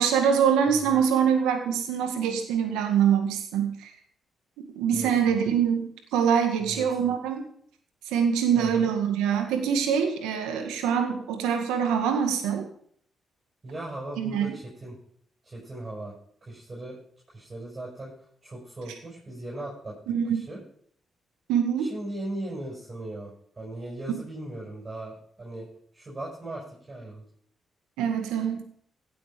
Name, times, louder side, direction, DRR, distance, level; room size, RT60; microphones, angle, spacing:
voice 1, 0.0-3.9 4.6-7.4 8.1-12.7 14.2-14.5 20.1-20.4 21.5-21.9 28.0-28.6, right 7 dB, 85° right, 5 dB, 1.9 m, -24 dB
voice 2, 4.9-5.4 6.6-7.1 8.6-8.9 13.6-14.9 15.4-16.1 16.4-17.0 17.3-18.1 18.4-20.0 20.3-20.6 21.8-25.7 25.9-27.2, right 1 dB, 35° right, -5 dB, 6.9 m, -38 dB
16.5 x 7.8 x 5.2 m, 0.62 s
supercardioid pair, 50°, 0 cm